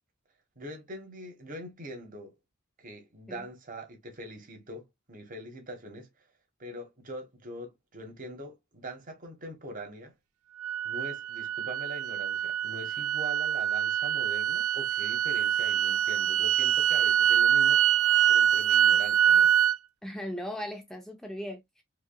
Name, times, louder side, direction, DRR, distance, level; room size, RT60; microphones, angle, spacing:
voice 1, 0.6-2.3 2.8-6.1 6.6-10.1 10.8-17.9 18.3-19.5, equal, 40° right, 1.4 m, -43 dB
sound 1, 10.6-19.8, right 10 dB, 80° right, 0.4 m, -25 dB
voice 2, 20.0-21.8, equal, ahead, 0.4 m, -38 dB
4.7 x 2.9 x 2.2 m
head